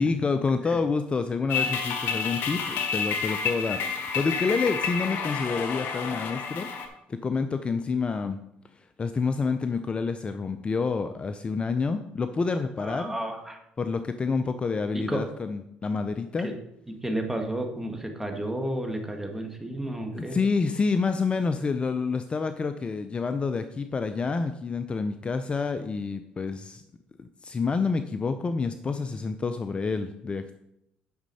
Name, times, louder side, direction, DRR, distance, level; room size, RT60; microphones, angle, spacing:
voice 1, 0.0-8.4 9.0-13.1 13.8-16.5 20.1-26.8 27.2-30.5, left 4 dB, 30° left, 9 dB, 0.6 m, -28 dB
sound 1, 1.5-6.9, left 6 dB, 70° left, 1.3 m, -30 dB
voice 2, 12.8-13.6 14.9-15.2 16.4-16.5 17.0-20.4, right 1 dB, 10° right, 3 dB, 1.8 m, -32 dB
9.5 x 6.4 x 4.2 m, 0.81 s
supercardioid pair, 85°, 4 cm